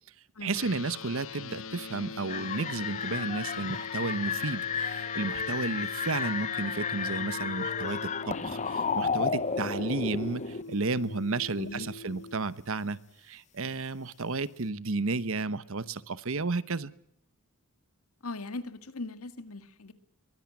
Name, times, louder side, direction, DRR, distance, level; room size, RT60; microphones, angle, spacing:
voice 1, 0.4-16.9, right 3 dB, 65° right, 17 dB, 1.0 m, -32 dB
sound 1, 0.5-12.4, left 4 dB, 60° left, 1.0 m, -43 dB
sound 2, 2.3-10.6, left 6 dB, 30° left, 0.8 m, -33 dB
voice 2, 11.6-11.9 18.2-19.9, left 2 dB, 80° left, 11 dB, 1.9 m, -39 dB
23.0 x 17.0 x 8.6 m, 0.73 s
head